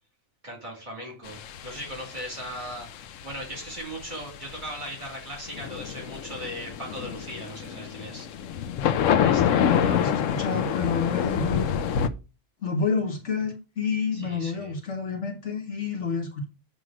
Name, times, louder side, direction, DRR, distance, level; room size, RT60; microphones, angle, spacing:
voice 1, 0.4-2.9 3.2-8.3 9.1-10.1 14.1-14.8, equal, 40° right, -1 dB, 2.5 m, -38 dB
sound 1, 1.3-12.1, left 8 dB, 85° left, 1.0 m, -27 dB
voice 2, 9.6-11.7 12.6-16.4, left 5 dB, 65° left, 2 dB, 1.5 m, -29 dB
7.6 x 3.2 x 6.1 m, 0.31 s
omnidirectional pair, 1.3 m